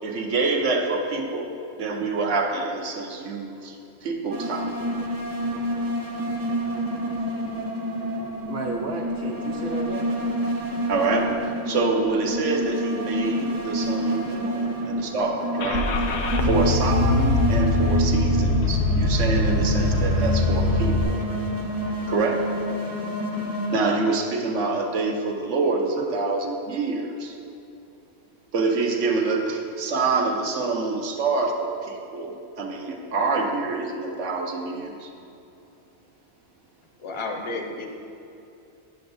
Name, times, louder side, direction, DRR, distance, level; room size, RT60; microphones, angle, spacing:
voice 1, 0.0-1.5 1.8-3.8 4.0-4.7 10.9-11.3 11.7-15.9 16.4-21.2 22.1-22.4 23.7-27.4 28.5-35.1, right 3 dB, 85° right, 2 dB, 1.1 m, -26 dB
sound 1, 4.3-23.8, right 1 dB, 25° right, 0.6 m, -28 dB
voice 2, 8.5-10.1 14.5-14.8 16.4-16.8 17.9-18.1 26.0-26.1, right 3 dB, 60° right, -1 dB, 0.7 m, -33 dB
Car / Engine starting, 15.6-21.0, left 2 dB, 70° left, 0.8 m, -22 dB
voice 3, 37.0-37.9, left 3 dB, 35° left, 3 dB, 0.5 m, -31 dB
10.5 x 6.8 x 2.6 m, 2.7 s
omnidirectional pair, 1.2 m